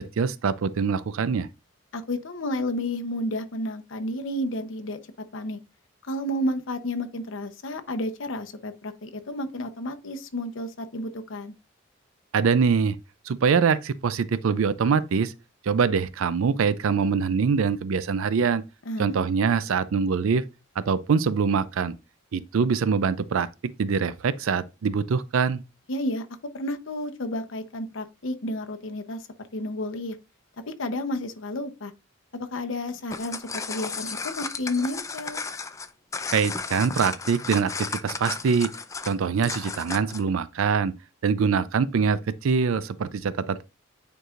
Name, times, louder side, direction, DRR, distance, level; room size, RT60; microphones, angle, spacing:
voice 1, 0.0-1.5 12.3-13.0 13.3-15.3 15.6-18.6 19.0-20.4 20.9-21.9 22.3-23.5 23.8-25.6 36.3-38.7 39.0-40.9 41.2-43.6, right 5 dB, 80° right, 0.4 m, -24 dB
voice 2, 1.9-5.0 5.3-5.6 6.1-11.5 18.9-19.2 25.9-26.3 26.5-29.2 29.5-30.2 30.7-31.9 32.3-35.4, left 1 dB, 65° left, 0.8 m, -31 dB
sound 1, 32.9-40.3, left 4 dB, 15° left, 0.4 m, -34 dB
9.1 x 4.7 x 2.5 m
head